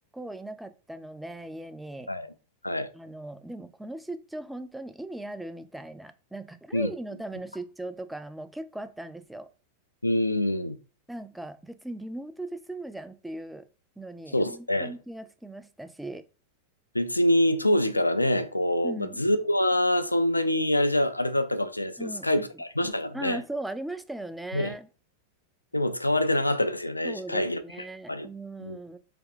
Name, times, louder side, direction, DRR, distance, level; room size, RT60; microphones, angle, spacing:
voice 1, 0.1-2.1 2.9-9.5 11.1-13.7 14.0-16.2 18.8-19.2 22.0-22.6 23.1-24.9 27.0-29.0, right 1 dB, 5° right, 0.3 m, -38 dB
voice 2, 10.0-10.8 14.3-14.9 16.9-23.4 24.5-24.7 25.7-27.6 28.1-28.3 28.6-28.8, left 1 dB, 85° left, 0.3 m, -25 dB
3.4 x 2.9 x 2.4 m
figure-of-eight pair, 90°, 0 cm